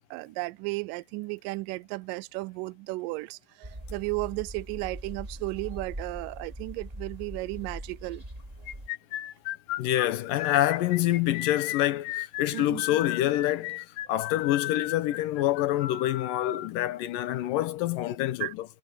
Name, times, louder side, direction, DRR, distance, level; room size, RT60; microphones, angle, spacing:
voice 1, 0.1-8.2 12.5-12.8 18.4-18.5, right 23 dB, 80° right, 2.1 m, -34 dB
sound 1, 3.6-8.9, right 1 dB, 10° right, 4.2 m, -41 dB
sound 2, 8.7-16.7, left 15 dB, 90° left, 3.0 m, -35 dB
voice 2, 9.8-18.7, left 14 dB, 75° left, 2.5 m, -27 dB
omnidirectional pair, 4.2 m